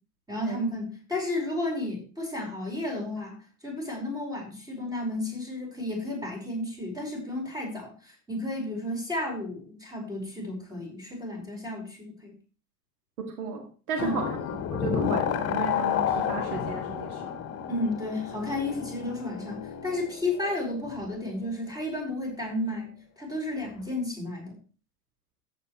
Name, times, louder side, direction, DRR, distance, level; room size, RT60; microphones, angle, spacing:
voice 1, 0.3-3.4 3.6-12.3 14.0-14.3 17.7-24.6, left 1 dB, 10° right, 0 dB, 5.0 m, -32 dB
voice 2, 13.4-14.3 14.7-17.4, right 5 dB, 65° right, 2 dB, 2.3 m, -34 dB
sound 1, 14.0-21.0, left 8 dB, 30° left, 1.4 m, -31 dB
14.0 x 8.4 x 3.2 m, 0.37 s
figure-of-eight pair, 75°, 46 cm